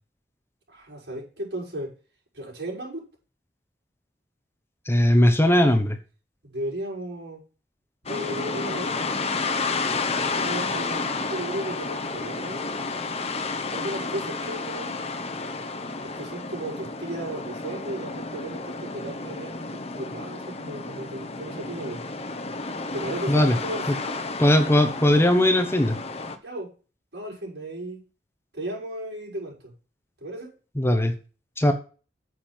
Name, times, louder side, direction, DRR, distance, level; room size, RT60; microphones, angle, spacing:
voice 1, 0.7-1.9 2.3-3.0 6.4-7.4 8.0-9.9 10.4-13.0 13.7-15.0 16.0-22.0 22.9-24.1 26.4-26.7 27.1-28.0 28.5-29.7 30.2-30.5, right 1 dB, 80° right, -3 dB, 6.4 m, -35 dB
voice 2, 4.9-6.0 23.3-23.5 24.4-26.0 30.8-31.1 31.6-31.7, left 1 dB, 15° left, 7 dB, 1.1 m, -19 dB
sound 1, 8.1-26.4, left 3 dB, 35° left, 1.2 m, -31 dB
9.6 x 7.6 x 4.5 m, 0.35 s
head